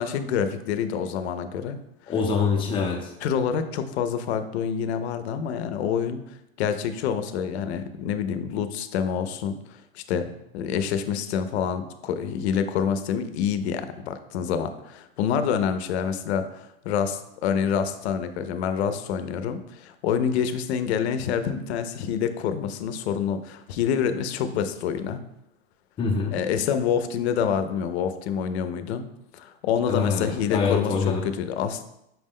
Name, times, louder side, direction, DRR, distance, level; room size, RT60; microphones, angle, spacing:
voice 1, 0.0-1.8 3.2-6.2 6.6-25.2 26.3-29.1 29.3-31.8, left 7 dB, 85° left, 9 dB, 0.5 m, -27 dB
voice 2, 2.1-3.1 26.0-26.3 29.9-31.2, left 5 dB, 15° left, 1 dB, 0.5 m, -24 dB
5.7 x 2.1 x 3.6 m, 0.84 s
supercardioid pair, 150°, 32 cm